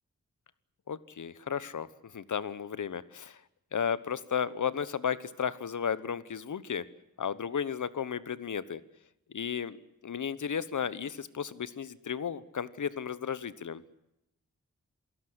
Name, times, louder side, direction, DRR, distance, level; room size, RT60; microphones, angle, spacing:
voice 1, 0.9-1.9 2.1-3.4 3.7-6.8 7.2-8.8 9.3-9.8 10.0-13.8, left 7 dB, 75° left, 17 dB, 1.1 m, -34 dB
28.0 x 17.5 x 8.1 m, 0.87 s
wide cardioid pair, 80°, 31 cm